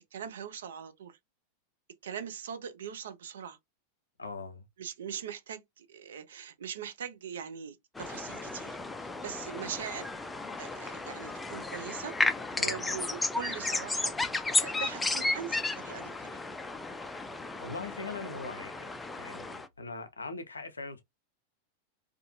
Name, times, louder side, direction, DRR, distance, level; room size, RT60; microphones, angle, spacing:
voice 1, 0.1-1.2 2.0-3.6 4.8-10.1 10.6-12.1 12.6-14.1 14.6-16.4, right 8 dB, 60° right, 0.4 m, -41 dB
voice 2, 4.2-4.6 12.6-12.8 17.6-18.9 19.2-21.0, left 3 dB, 75° left, 0.5 m, -41 dB
sound 1, 8.0-19.7, left 3 dB, 10° left, 0.3 m, -34 dB
2.4 x 2.4 x 2.6 m
figure-of-eight pair, 90°, 0 cm